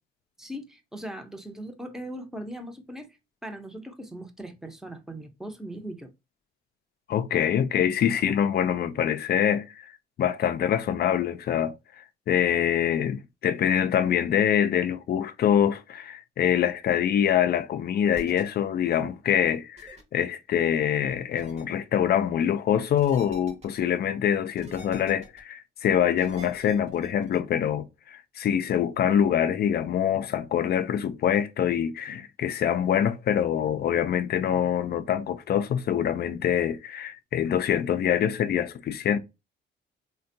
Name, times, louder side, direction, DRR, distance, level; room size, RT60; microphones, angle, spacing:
voice 1, 0.4-3.1 3.4-6.1, right 1 dB, ahead, 0.6 m, -39 dB
voice 2, 7.1-9.7 10.2-11.7 12.3-39.2, left 9 dB, 55° left, 0.4 m, -25 dB
sound 1, 18.1-18.4 19.8-20.0 21.4-21.6 23.0-23.8 24.6-25.4 26.2-27.4, right 2 dB, 35° right, 0.8 m, -46 dB
3.4 x 2.2 x 2.6 m
cardioid pair, 90°, 20 cm